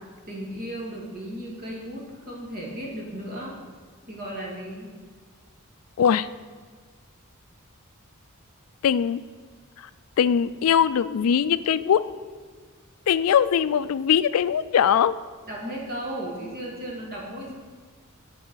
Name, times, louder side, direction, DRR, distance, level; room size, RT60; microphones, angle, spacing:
voice 1, 0.3-3.6 4.1-4.9 15.5-17.5, right 1 dB, 45° right, -3 dB, 2.4 m, -35 dB
voice 2, 8.8-9.2 10.2-12.1 13.1-15.2, left 8 dB, 75° left, 16 dB, 0.3 m, -21 dB
11.0 x 4.9 x 6.2 m, 1.5 s
head